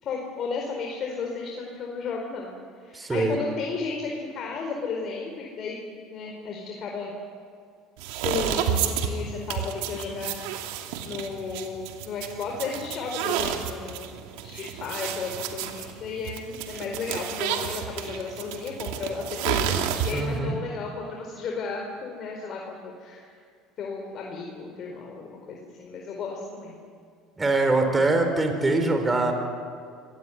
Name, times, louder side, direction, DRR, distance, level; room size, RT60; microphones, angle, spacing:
voice 1, 0.0-2.5 2.8-5.8 6.1-7.1 8.2-10.4 11.0-23.4 23.8-26.8, left 4 dB, 50° left, 0 dB, 4.6 m, -34 dB
voice 2, 2.9-3.4 20.1-20.6 27.4-29.3, right 2 dB, 20° right, 5 dB, 4.6 m, -23 dB
sound 1, 8.0-20.4, right 9 dB, 80° right, 2.5 m, -31 dB
25.5 x 19.0 x 9.6 m, 2.2 s
supercardioid pair, 90°, 0 cm